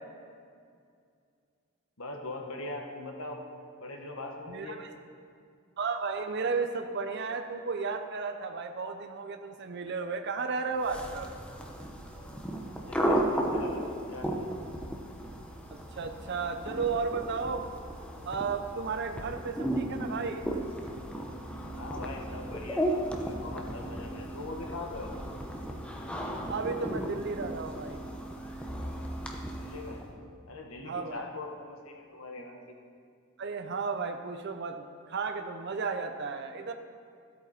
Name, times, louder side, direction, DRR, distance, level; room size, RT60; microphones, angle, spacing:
voice 1, 2.0-3.4 3.8-4.8 12.8-14.5 21.8-25.1 29.5-30.0 30.5-32.8, left 2 dB, 80° left, 2 dB, 1.3 m, -41 dB
voice 2, 4.5-4.9 5.8-11.3 15.7-17.6 18.3-20.4 26.5-28.0 30.8-31.2 33.4-36.7, right 4 dB, 55° right, 6 dB, 0.6 m, -33 dB
sound 1, 10.8-30.1, right 1 dB, 5° left, 0.8 m, -35 dB
13.5 x 8.4 x 4.2 m, 2.3 s
head